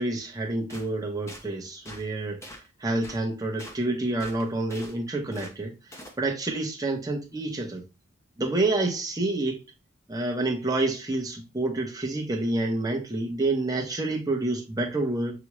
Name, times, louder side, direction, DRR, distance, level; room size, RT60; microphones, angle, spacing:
voice 1, 0.0-2.5 2.8-7.8 8.4-9.6 10.1-15.4, right 2 dB, 15° right, 0.8 m, -28 dB
sound 1, 0.7-0.9 1.3-1.4 1.9-2.1 2.4-2.7 3.0-3.2 3.6-3.8 4.2-4.9 5.3-5.5 5.9-6.2, equal, 15° left, 0.7 m, -43 dB
5.9 x 2.3 x 3.0 m
head